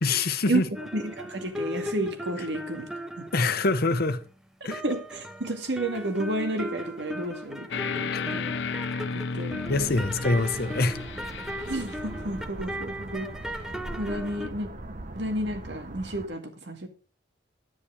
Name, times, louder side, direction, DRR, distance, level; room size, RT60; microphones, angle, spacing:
voice 1, 0.0-0.7 2.4-2.5 3.3-4.2 4.6-4.8 8.1-8.2 9.7-11.0, left 3 dB, 60° left, 1.0 m, -25 dB
sound 1, 0.7-4.4 4.7-14.5, equal, 5° right, 0.9 m, -38 dB
voice 2, 0.9-3.3 4.7-8.5 9.2-9.6 11.7-13.3 14.0-14.7 15.1-16.9, right 1 dB, 70° right, 2.1 m, -31 dB
sound 2, 7.7-12.0, left 4 dB, 75° left, 0.6 m, -33 dB
sound 3, 9.7-16.3, right 2 dB, 50° right, 1.2 m, -41 dB
10.5 x 10.0 x 4.8 m
head